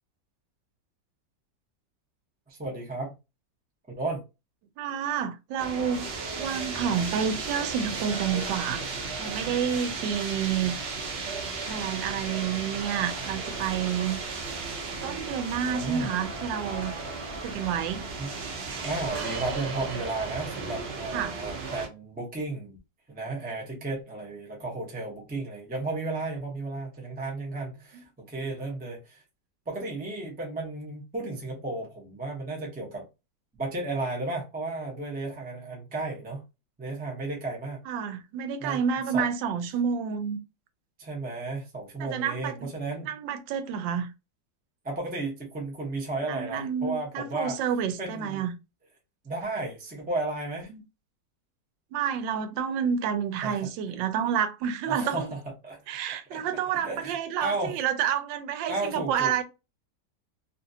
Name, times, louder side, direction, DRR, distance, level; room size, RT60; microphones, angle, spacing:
voice 1, 2.5-3.1 3.9-4.2 15.6-16.3 18.2-18.3 18.8-22.8 23.1-29.2 29.7-33.1 33.6-36.4 36.8-37.8 38.6-38.8 39.1-39.3 41.0-43.1 44.8-47.6 48.0-48.4 49.2-50.7 53.4-53.7 54.9-55.8 56.1-56.4 56.8-57.8 58.7-59.4, right 2 dB, 10° right, 0.4 m, -34 dB
voice 2, 4.8-6.1 6.4-8.8 9.2-10.7 11.7-14.2 15.0-16.9 17.4-18.1 21.1-21.4 37.9-40.4 42.0-42.7 43.1-44.1 46.3-48.5 50.7-50.8 51.9-55.3 55.9-59.4, right 8 dB, 85° right, 1.3 m, -29 dB
sound 1, 5.6-21.9, right 4 dB, 65° right, 0.6 m, -35 dB
2.9 x 2.6 x 2.7 m
omnidirectional pair, 1.9 m